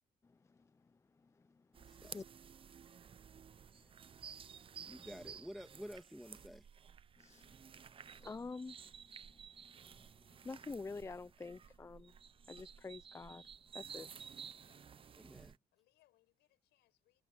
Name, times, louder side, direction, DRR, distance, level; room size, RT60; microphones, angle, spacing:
voice 1, 0.2-2.2 3.7-3.9 4.3-4.4 7.2-14.5, left 4 dB, 15° left, 0.5 m, -50 dB
sound 1, 1.7-15.6, right 7 dB, 30° right, 0.7 m, -54 dB
voice 2, 1.9-2.2 4.4-4.5 4.8-6.7 15.2-15.6, equal, ahead, 2.5 m, -51 dB
voice 3, 14.6-15.3 15.7-17.2, left 16 dB, 85° left, 7.1 m, -76 dB
cardioid pair, 110°, 17 cm